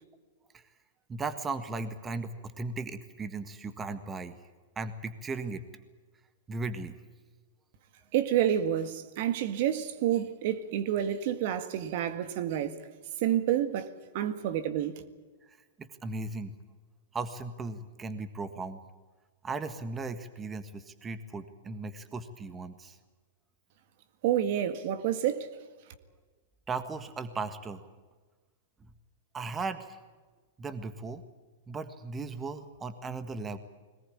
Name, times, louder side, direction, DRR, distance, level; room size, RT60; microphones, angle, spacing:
voice 1, 1.1-4.4 4.7-5.7 6.5-6.9 15.4-16.5 17.1-18.8 19.4-23.0 26.7-27.8 28.8-28.9 29.3-30.0 30.6-31.2 31.7-33.6, right 3 dB, 20° right, 1.6 m, -37 dB
voice 2, 8.1-12.8 13.2-13.9 14.1-15.0 24.2-25.5, right 10 dB, 55° right, 1.8 m, -29 dB
21.5 x 19.5 x 8.7 m
hypercardioid pair, 125°, 0 cm